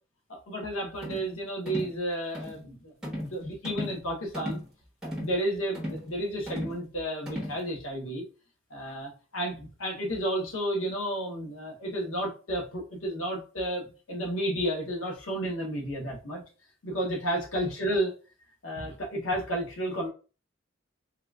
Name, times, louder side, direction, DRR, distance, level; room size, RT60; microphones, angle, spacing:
voice 1, 0.3-4.6 5.0-8.2 8.7-16.4 16.8-18.1 18.6-20.1, right 1 dB, 90° left, -1 dB, 1.0 m, -32 dB
sound 1, 1.0-1.3 1.7-2.0 2.3-2.6 3.0-3.4 3.6-4.0 4.3-4.7 5.0-5.4 5.7-6.1 6.5-6.8 7.3-7.6, equal, 5° right, 0.8 m, -35 dB
3.8 x 2.4 x 2.2 m, 0.34 s
head